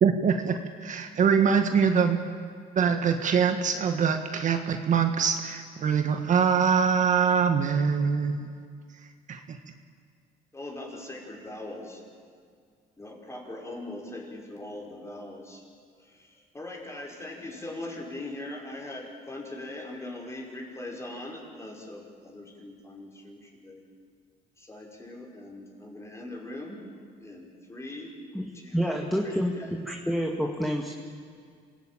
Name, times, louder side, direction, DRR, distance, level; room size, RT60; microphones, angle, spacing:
voice 1, 0.0-2.2 2.7-8.5 9.3-9.6, right 6 dB, 50° right, 6 dB, 1.6 m, -24 dB
voice 2, 10.5-12.0 13.0-15.6 16.0-23.8 24.6-26.8 27.2-28.1 28.6-29.7, left 2 dB, 15° left, 0 dB, 5.6 m, -41 dB
voice 3, 28.3-30.9, equal, ahead, 1 dB, 2.0 m, -29 dB
27.0 x 17.5 x 9.0 m, 2.1 s
cardioid pair, 110°, 17 cm